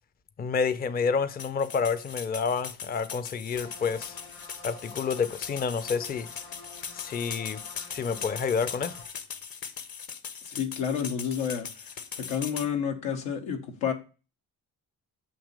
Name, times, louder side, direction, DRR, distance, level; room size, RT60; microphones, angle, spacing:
voice 1, 0.4-4.2 4.6-6.3 6.9-9.0, left 5 dB, 20° left, 0.5 m, -29 dB
sound 1, 1.4-12.7, left 6 dB, 45° left, 0.9 m, -40 dB
sound 2, 3.5-9.1, left 3 dB, 70° left, 3.2 m, -48 dB
voice 2, 10.4-11.9 12.2-13.9, left 7 dB, 85° left, 1.0 m, -30 dB
7.1 x 2.9 x 5.2 m
hypercardioid pair, 50°, 48 cm